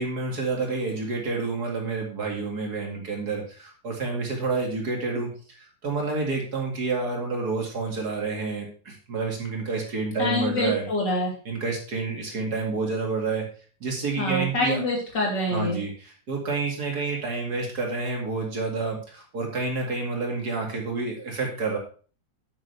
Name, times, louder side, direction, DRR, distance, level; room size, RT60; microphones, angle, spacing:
voice 1, 0.0-10.9 11.5-13.5 13.8-14.8 15.5-21.8, right 4 dB, 55° right, 1 dB, 2.7 m, -29 dB
voice 2, 10.2-11.3 14.2-15.8, left 2 dB, 65° left, -2 dB, 4.0 m, -26 dB
9.4 x 8.8 x 3.4 m, 0.39 s
omnidirectional pair, 2.1 m